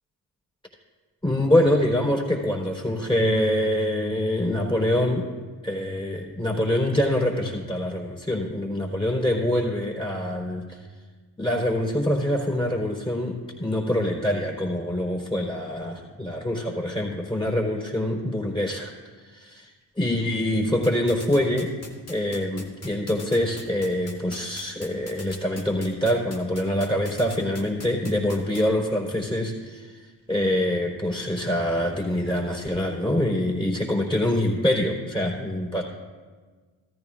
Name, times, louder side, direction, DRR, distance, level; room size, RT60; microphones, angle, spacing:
voice 1, 1.2-5.3 5.6-10.8 11.4-18.9 19.2-19.7 20.0-21.7 22.1-30.0 30.3-35.8, left 1 dB, 10° left, -1 dB, 3.8 m, -25 dB
sound 1, 20.8-28.6, left 3 dB, 30° left, 2.2 m, -41 dB
14.5 x 14.0 x 2.5 m, 1.4 s
hypercardioid pair, 50°, 49 cm